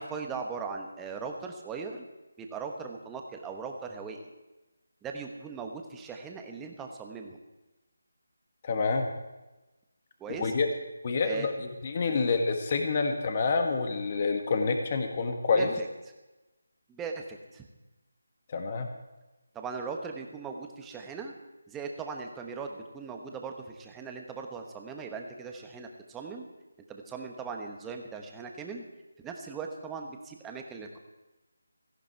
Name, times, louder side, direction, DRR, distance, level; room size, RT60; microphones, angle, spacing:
voice 1, 0.0-2.0 2.4-4.2 5.0-7.4 10.2-10.5 11.2-11.5 12.1-12.2 15.6-15.9 16.9-17.7 19.5-21.3 21.7-26.5 26.9-28.8 29.2-31.0, right 5 dB, 5° right, 3 dB, 1.1 m, -39 dB
voice 2, 8.6-9.1 10.3-10.7 11.0-11.5 11.8-15.7 18.5-18.9, left 4 dB, 30° left, 5 dB, 1.5 m, -27 dB
17.5 x 14.0 x 4.6 m, 1.1 s
figure-of-eight pair, 170°, 0 cm